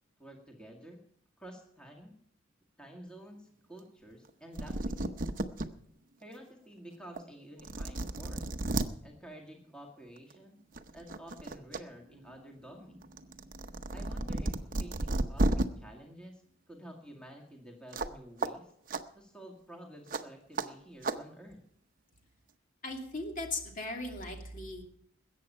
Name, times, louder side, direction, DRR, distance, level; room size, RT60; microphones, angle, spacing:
voice 1, 0.2-1.0 1.4-2.2 2.8-5.1 6.2-8.5 9.0-10.6 10.9-13.0 13.9-16.4 16.7-18.7 19.2-21.6, right 1 dB, 5° left, 1 dB, 2.0 m, -50 dB
sound 1, 4.3-4.4 4.5-5.7 6.2-6.3 7.2-7.3 7.6-8.9 10.2-10.3 10.7-11.8 12.1-15.6 17.9-18.1 18.4-18.5 18.9-19.0 20.1-20.2 20.6-20.7 21.0-21.2, right 2 dB, 45° right, 0.8 m, -33 dB
voice 2, 22.8-24.9, left 2 dB, 40° left, 2 dB, 2.5 m, -38 dB
20.5 x 8.6 x 5.6 m, 0.69 s
head